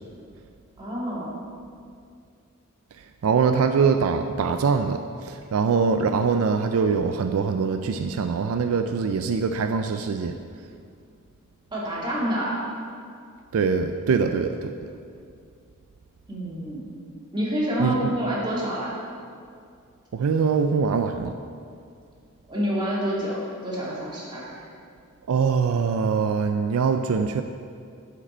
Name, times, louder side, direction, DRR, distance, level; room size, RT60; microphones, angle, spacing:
voice 1, 0.8-1.3 11.7-12.6 16.3-16.9 17.3-18.9 22.5-24.4, equal, 20° right, -7 dB, 2.1 m, -28 dB
voice 2, 3.2-10.3 13.5-14.7 17.8-18.1 20.1-21.3 25.3-27.4, right 5 dB, 80° right, 7 dB, 0.4 m, -23 dB
11.0 x 5.1 x 4.4 m, 2.3 s
head